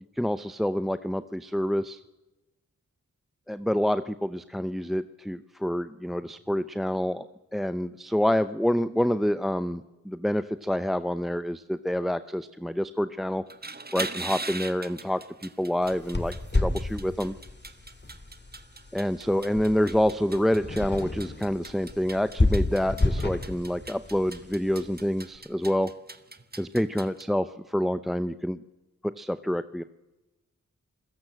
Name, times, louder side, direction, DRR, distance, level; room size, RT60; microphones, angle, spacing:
voice 1, 0.2-2.0 3.5-7.2 7.5-13.4 13.9-17.3 18.9-25.9 26.6-28.6 29.0-29.8, equal, ahead, 13 dB, 0.7 m, -27 dB
sound 1, 13.4-27.2, right 3 dB, 30° right, 1.5 m, -41 dB
sound 2, 15.8-25.2, left 2 dB, 35° left, 2.2 m, -31 dB
26.5 x 16.5 x 7.7 m, 1.1 s
cardioid pair, 45°, 32 cm